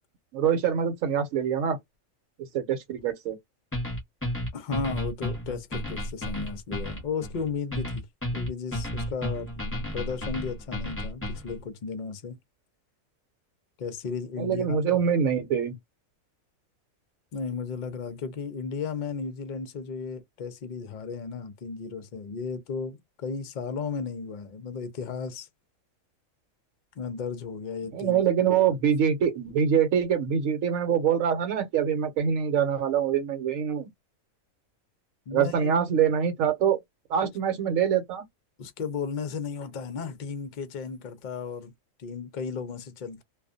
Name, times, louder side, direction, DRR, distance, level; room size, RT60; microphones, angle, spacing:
voice 1, 0.3-1.8 2.5-3.4 14.4-15.8 27.9-33.9 35.3-36.8 37.1-38.2, right 8 dB, 75° right, 1.1 m, -24 dB
sound 1, 3.7-11.6, left 1 dB, 10° left, 0.8 m, -33 dB
voice 2, 4.5-8.1 8.3-12.4 13.8-14.8 17.3-25.5 27.0-28.5 35.3-36.1 38.6-41.7 42.0-43.2, left 5 dB, 50° left, 0.5 m, -34 dB
2.4 x 2.2 x 2.5 m
omnidirectional pair, 1.4 m